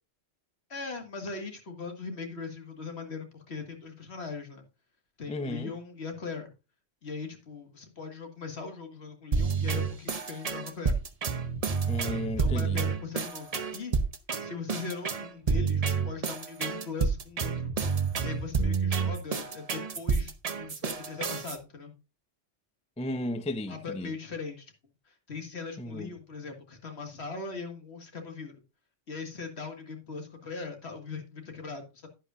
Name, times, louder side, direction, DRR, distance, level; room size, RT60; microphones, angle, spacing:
voice 1, 0.7-4.7 5.2-6.5 7.0-11.0 12.4-14.0 14.4-17.7 18.2-22.0 23.7-24.7 25.1-28.5 29.1-32.1, left 4 dB, 60° left, 2.0 m, -40 dB
voice 2, 5.3-5.7 11.9-12.8 23.0-24.1 25.8-26.1, left 1 dB, 10° left, 0.5 m, -34 dB
sound 1, 9.3-21.6, right 5 dB, 35° right, 0.8 m, -29 dB
11.0 x 9.9 x 2.4 m
omnidirectional pair, 1.3 m